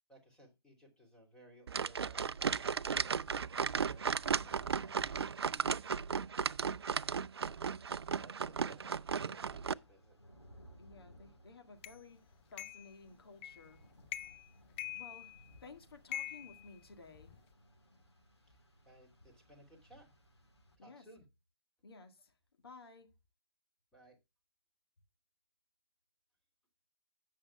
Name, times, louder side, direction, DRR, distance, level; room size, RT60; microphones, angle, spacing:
voice 1, 0.1-3.1 3.7-6.1 8.2-10.2 18.4-20.1 20.8-21.3 23.9-24.2, right 1 dB, 5° left, 2.9 m, -61 dB
sound 1, 1.7-9.7, right 6 dB, 70° right, 0.4 m, -35 dB
Rain, 3.1-20.8, equal, 80° left, 3.6 m, -64 dB
voice 2, 10.8-13.8 14.9-15.3 15.6-17.3 20.8-21.0 21.8-22.3 22.6-23.1, left 4 dB, 60° left, 1.9 m, -55 dB
sound 2, 11.8-12.0 12.6-12.9 13.4-13.7 14.1-14.5 14.8-15.6 16.1-17.4, left 13 dB, 25° left, 0.5 m, -44 dB
16.5 x 6.4 x 2.2 m
figure-of-eight pair, 125°, 14 cm